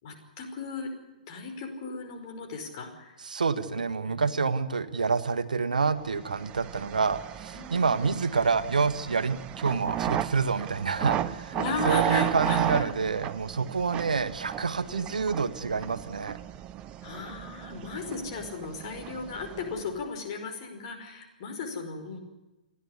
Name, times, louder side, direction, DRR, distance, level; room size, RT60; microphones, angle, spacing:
voice 1, 0.0-0.9 1.3-3.2 3.5-4.7 7.5-8.2 11.5-12.9 14.9-15.1 17.0-22.2, left 4 dB, 40° left, 4 dB, 5.3 m, -37 dB
voice 2, 3.2-11.6 11.8-16.4, right 5 dB, 70° right, 12 dB, 1.6 m, -28 dB
sound 1, 6.2-20.1, right 11 dB, 20° right, 0.7 m, -34 dB
30.0 x 11.5 x 9.9 m, 1.1 s
figure-of-eight pair, 120°, 5 cm